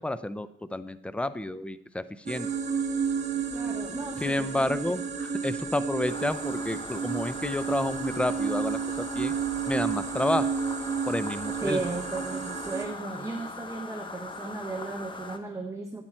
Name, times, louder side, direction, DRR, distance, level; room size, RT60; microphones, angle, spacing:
voice 1, 0.0-2.5 4.2-9.3 9.7-10.5 11.1-11.8, left 1 dB, 5° left, 15 dB, 0.5 m, -30 dB
sound 1, 2.3-12.9, right 6 dB, 35° right, 1.2 m, -31 dB
voice 2, 3.5-5.0 11.6-16.0, right 3 dB, 15° right, 3 dB, 1.0 m, -35 dB
sound 2, 6.1-15.4, left 3 dB, 25° left, 1.0 m, -41 dB
10.5 x 8.9 x 4.4 m, 0.76 s
cardioid pair, 90°, 20 cm